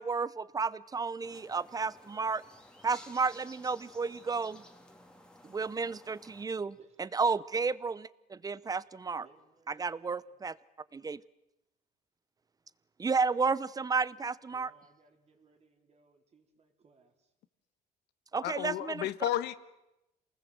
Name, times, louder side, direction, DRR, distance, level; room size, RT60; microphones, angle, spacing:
voice 1, 0.0-2.4 2.8-4.6 5.4-9.3 9.7-10.6 10.9-11.2 13.0-14.7 18.3-19.1, right 4 dB, 20° right, 0.8 m, -32 dB
sound 1, 1.2-6.5, left 1 dB, 5° left, 3.0 m, -55 dB
voice 2, 9.2-10.1 14.5-17.1, right 5 dB, 40° right, 4.1 m, -63 dB
voice 3, 18.4-19.5, left 12 dB, 80° left, 1.3 m, -32 dB
27.5 x 19.5 x 7.8 m
cardioid pair, 110°, 17 cm